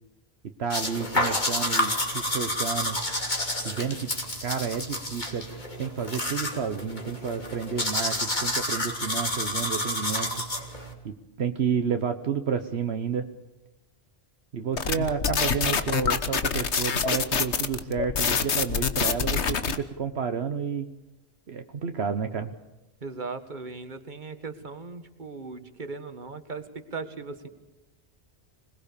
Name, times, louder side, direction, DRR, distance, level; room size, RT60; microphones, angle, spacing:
voice 1, 0.6-3.0 3.6-4.1 4.4-5.4 5.8-10.4 11.0-13.3 14.5-20.9 21.5-22.5, right 6 dB, 70° right, 7 dB, 1.3 m, -30 dB
sound 1, 0.7-10.9, left 1 dB, 45° left, 3.2 m, -29 dB
sound 2, 14.8-19.8, left 6 dB, 85° left, 1.5 m, -26 dB
voice 2, 23.0-27.5, right 4 dB, 45° right, 9 dB, 1.9 m, -38 dB
26.0 x 20.5 x 6.9 m, 1.0 s
omnidirectional pair, 1.1 m